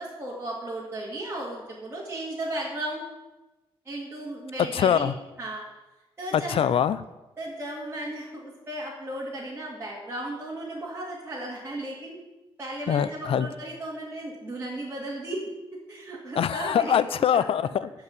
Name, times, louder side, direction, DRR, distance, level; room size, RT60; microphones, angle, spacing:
voice 1, 0.0-3.0 3.9-5.1 5.4-5.6 6.2-6.7 7.4-12.2 12.6-15.4 15.9-17.0 17.3-17.5, right 1 dB, 25° right, -6 dB, 2.3 m, -35 dB
voice 2, 4.7-5.1 6.3-7.0 12.9-13.5 16.4-17.9, left 8 dB, 75° left, 14 dB, 0.5 m, -23 dB
12.5 x 4.8 x 8.3 m, 1.1 s
wide cardioid pair, 140°, 10 cm